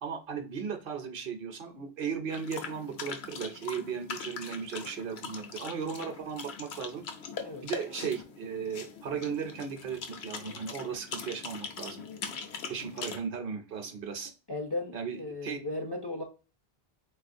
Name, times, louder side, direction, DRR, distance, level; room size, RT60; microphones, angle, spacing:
voice 1, 0.0-7.0 7.6-12.0 12.7-14.3 14.9-15.6, right 6 dB, 65° right, 7 dB, 0.7 m, -36 dB
sound 1, 2.3-13.2, left 5 dB, 80° left, 0.9 m, -41 dB
voice 2, 14.5-16.2, left 2 dB, 35° left, 0 dB, 0.4 m, -36 dB
3.9 x 2.4 x 2.5 m, 0.33 s
omnidirectional pair, 1.1 m